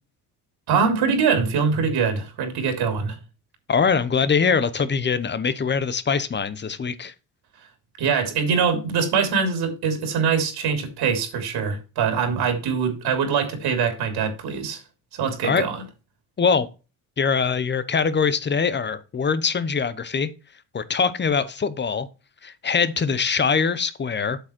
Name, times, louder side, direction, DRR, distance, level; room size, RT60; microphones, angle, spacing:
voice 1, 0.7-3.2 8.0-14.8 15.1-15.8, right 6 dB, 70° right, 3.1 m, -23 dB
voice 2, 3.7-7.1 15.4-15.6 16.4-16.7 17.2-20.3 20.7-22.1 22.4-24.4, left 5 dB, 25° left, 0.9 m, -23 dB
8.2 x 6.4 x 4.5 m
cardioid pair, 100°, 41 cm